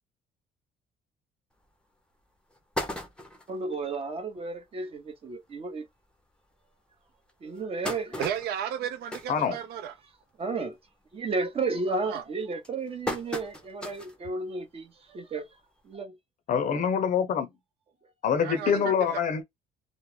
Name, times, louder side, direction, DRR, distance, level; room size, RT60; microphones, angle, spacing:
sound 1, 1.6-1.7 2.2-2.3 2.5-3.6 4.1-4.2 4.5-4.6 4.9-5.1 5.8-5.9 6.4-6.5 7.3-10.1 10.5-10.8 11.2-11.6 12.2-14.2 14.6-14.7 15.9-16.0, left 1 dB, 5° left, 0.6 m, -37 dB
voice 1, 3.5-5.9 7.4-8.3 10.4-10.8 11.1-15.5 15.8-16.2 16.7-16.8 18.5-18.9, right 3 dB, 35° right, 0.7 m, -33 dB
voice 2, 8.2-9.9 12.1-12.2 18.4-19.2, right 9 dB, 70° right, 0.5 m, -33 dB
voice 3, 16.5-17.5 18.2-19.4, left 7 dB, 50° left, 0.5 m, -25 dB
2.2 x 2.0 x 3.1 m
cardioid pair, 110°, 17 cm